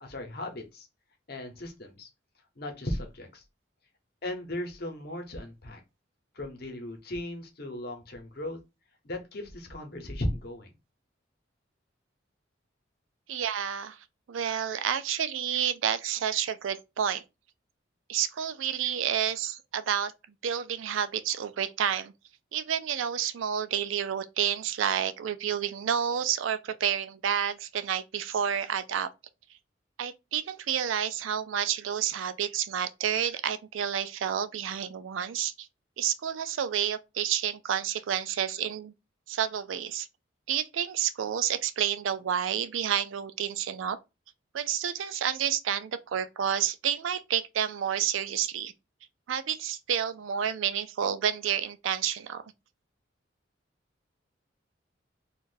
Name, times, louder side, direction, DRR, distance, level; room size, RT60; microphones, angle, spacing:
voice 1, 0.0-0.9 1.3-2.1 2.6-3.4 4.2-5.8 6.3-8.6 9.0-10.7, left 1 dB, 55° left, 0.8 m, -36 dB
voice 2, 13.3-14.0 14.3-17.2 18.1-20.1 20.4-22.1 22.5-29.1 30.0-35.7 36.0-38.9 39.3-40.1 40.5-44.0 44.5-48.7 49.3-52.4, right 9 dB, 85° right, 0.4 m, -30 dB
2.6 x 2.4 x 3.8 m
head